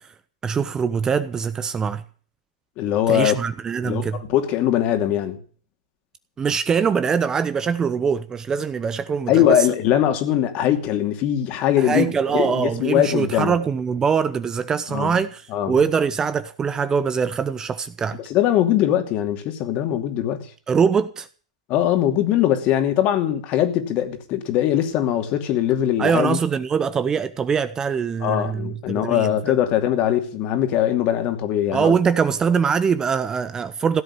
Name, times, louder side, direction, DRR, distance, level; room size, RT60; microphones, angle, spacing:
voice 1, 0.4-2.0 3.1-4.2 6.4-9.7 11.8-18.2 20.7-21.3 26.0-29.6 31.7-34.0, right 6 dB, 15° right, 0.8 m, -23 dB
voice 2, 2.8-3.4 3.8-5.4 9.3-12.0 12.3-13.6 14.9-15.1 15.5-15.7 18.2-20.5 21.7-26.4 28.2-31.9, left 11 dB, 40° left, 2.6 m, -21 dB
16.5 x 7.8 x 9.8 m
hypercardioid pair, 125°, 4 cm